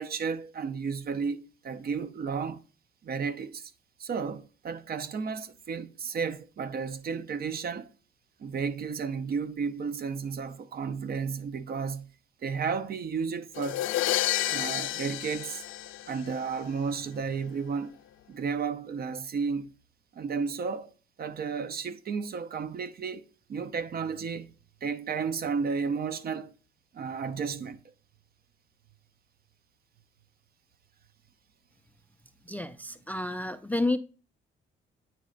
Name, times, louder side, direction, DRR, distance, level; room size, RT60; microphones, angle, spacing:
voice 1, 0.0-2.6 3.0-3.7 4.0-7.9 8.4-12.1 12.4-13.9 14.5-15.6 16.1-17.9 18.3-19.7 20.1-20.9 21.2-23.2 23.5-24.5 24.8-26.5 26.9-27.8, right 5 dB, 50° right, 0.6 m, -33 dB
sound 1, 13.6-16.5, left 14 dB, 85° left, 0.4 m, -30 dB
voice 2, 32.5-34.0, left 2 dB, 10° left, 0.3 m, -30 dB
9.1 x 3.2 x 3.8 m
cardioid pair, 90°, 20 cm